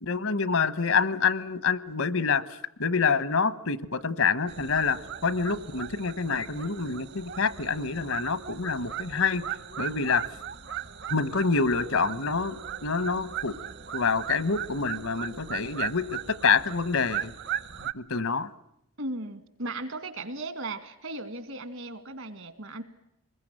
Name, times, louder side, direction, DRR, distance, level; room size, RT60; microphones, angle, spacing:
voice 1, 0.0-2.4 2.8-9.4 9.8-10.2 11.1-13.6 13.9-17.3 17.8-18.5, left 5 dB, 75° left, 16 dB, 1.2 m, -27 dB
sound 1, 4.5-17.9, right 10 dB, 50° right, 0.9 m, -38 dB
voice 2, 19.0-22.8, right 2 dB, 70° right, 12 dB, 2.1 m, -36 dB
26.0 x 21.0 x 8.9 m, 0.81 s
head